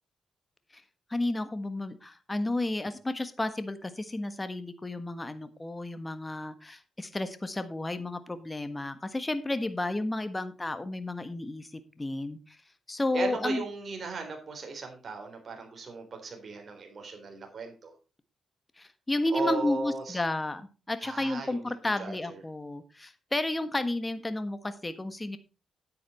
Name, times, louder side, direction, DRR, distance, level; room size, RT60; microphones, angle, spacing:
voice 1, 1.1-12.6 12.9-13.6 18.8-25.4, left 2 dB, 20° left, 11 dB, 1.4 m, -32 dB
voice 2, 13.1-17.9 19.3-20.2 21.0-22.2, right 4 dB, 50° right, 3 dB, 3.8 m, -37 dB
9.7 x 8.6 x 4.3 m, 0.32 s
cardioid pair, 65°, 0 cm